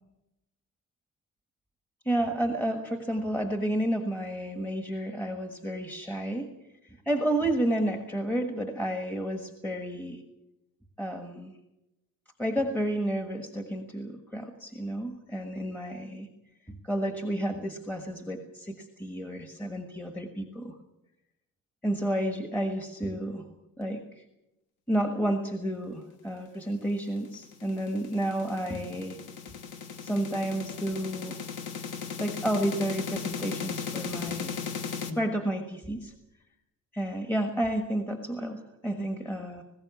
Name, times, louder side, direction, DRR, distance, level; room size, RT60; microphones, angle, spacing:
voice 1, 2.0-6.5 6.8-10.2 11.0-11.5 12.4-16.3 16.7-20.8 21.8-23.4 23.8-24.2 24.9-29.2 30.0-31.4 32.2-34.7 35.1-36.1 36.9-39.6, right 1 dB, 5° left, 5 dB, 1.4 m, -31 dB
sound 1, 27.0-35.1, left 6 dB, 70° left, 2.2 m, -37 dB
20.0 x 16.0 x 8.3 m, 0.91 s
cardioid pair, 170°, 31 cm